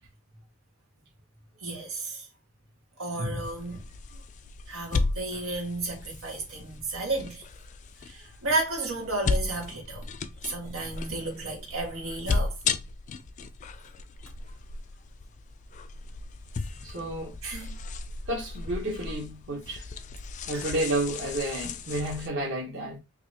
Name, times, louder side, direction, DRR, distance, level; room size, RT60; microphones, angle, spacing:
voice 1, 1.6-2.3 3.0-3.8 4.7-7.4 8.0-10.0 10.4-12.6 17.4-17.8 20.5-20.7, right 2 dB, 90° right, 1.6 m, -32 dB
sound 1, 3.4-22.3, left 4 dB, 35° left, 0.3 m, -35 dB
voice 2, 16.8-17.3 18.3-19.8 20.5-23.0, right 1 dB, 55° right, 1.1 m, -31 dB
3.9 x 2.8 x 2.8 m
head